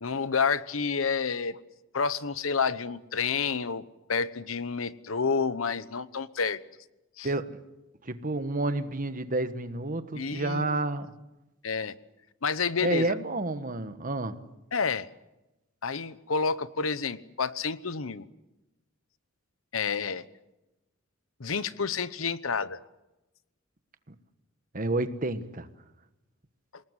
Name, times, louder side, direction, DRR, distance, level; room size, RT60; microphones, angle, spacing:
voice 1, 0.0-1.6 1.9-3.8 4.1-6.6 7.2-7.3 10.1-10.8 11.6-11.9 12.4-13.1 14.7-15.1 15.8-18.2 19.7-20.2 21.4-22.8, left 5 dB, 90° left, 1.0 m, -29 dB
voice 2, 7.2-7.6 8.0-11.1 12.8-14.4 24.1-24.2 24.7-25.7, right 2 dB, 40° right, 1.4 m, -30 dB
28.0 x 19.0 x 8.1 m
head